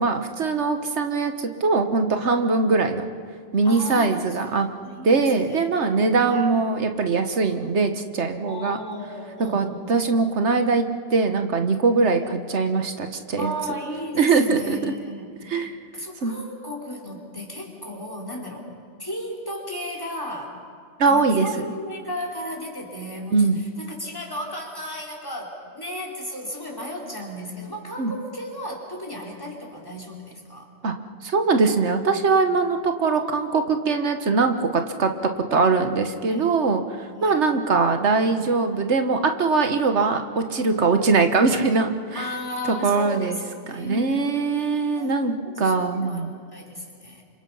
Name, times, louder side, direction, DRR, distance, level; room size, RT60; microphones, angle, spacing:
voice 1, 0.0-3.1 3.5-4.7 5.0-8.8 9.5-13.5 14.1-14.9 15.5-15.7 16.2-16.3 21.0-21.5 23.3-23.6 28.0-28.1 30.8-30.9 31.2-42.3 42.8-43.4 43.7-46.3, right 4 dB, 85° right, 7 dB, 1.6 m, -22 dB
voice 2, 3.6-4.2 4.8-5.7 6.2-6.5 8.5-10.1 12.2-12.3 13.4-15.3 15.9-18.7 19.0-20.6 21.0-30.7 33.0-33.7 36.3-36.4 37.1-37.4 42.1-43.4 43.6-44.5 44.9-47.2, left 1 dB, 20° left, 0 dB, 3.8 m, -35 dB
29.0 x 26.0 x 5.6 m, 2.3 s
omnidirectional pair, 1.1 m